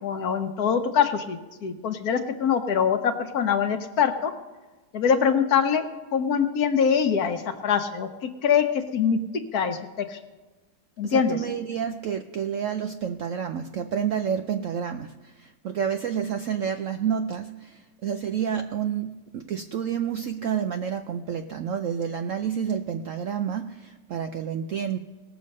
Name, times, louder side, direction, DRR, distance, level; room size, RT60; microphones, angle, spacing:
voice 1, 0.0-4.3 4.9-5.8 6.1-9.2 9.5-10.2 11.0-11.4, left 7 dB, 60° left, 8 dB, 1.3 m, -24 dB
voice 2, 11.0-25.0, right 8 dB, 70° right, 7 dB, 0.7 m, -29 dB
18.5 x 6.9 x 5.3 m, 1.2 s
omnidirectional pair, 1.9 m